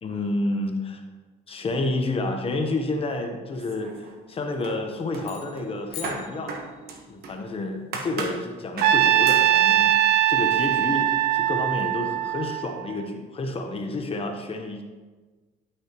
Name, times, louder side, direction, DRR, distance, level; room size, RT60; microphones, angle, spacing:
voice 1, 0.0-1.0 1.5-6.5 7.1-10.0 10.3-14.8, left 2 dB, 35° left, 4 dB, 0.9 m, -30 dB
sound 1, 3.5-4.3 4.6-7.4 7.9-8.4 8.8-9.0 9.3-9.5, right 4 dB, 65° right, 1.3 m, -36 dB
sound 2, 5.2-7.1, left 6 dB, 65° left, 1.3 m, -43 dB
Trumpet, 8.8-13.0, right 12 dB, 90° right, 0.4 m, -21 dB
11.5 x 6.2 x 3.0 m, 1.3 s
cardioid pair, 110°, 17 cm